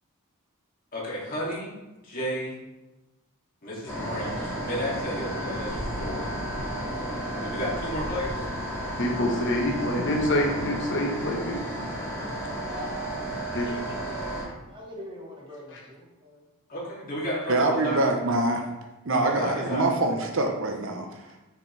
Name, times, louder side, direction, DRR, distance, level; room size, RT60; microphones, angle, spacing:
voice 1, 0.9-1.7 2.0-2.6 3.6-6.3 7.4-8.5 16.7-18.0 19.2-19.9, equal, 40° left, -6 dB, 2.5 m, -32 dB
sound 1, 3.9-14.4, right 1 dB, 15° left, 2.5 m, -32 dB
voice 2, 9.0-11.6 13.5-13.8 15.7-15.8, left 1 dB, 55° left, 0 dB, 1.2 m, -26 dB
voice 3, 12.6-16.4, equal, 20° right, -2 dB, 1.3 m, -43 dB
voice 4, 17.5-18.6 19.0-21.1, right 2 dB, 60° right, 3 dB, 0.9 m, -24 dB
6.6 x 6.2 x 3.3 m, 1.0 s
head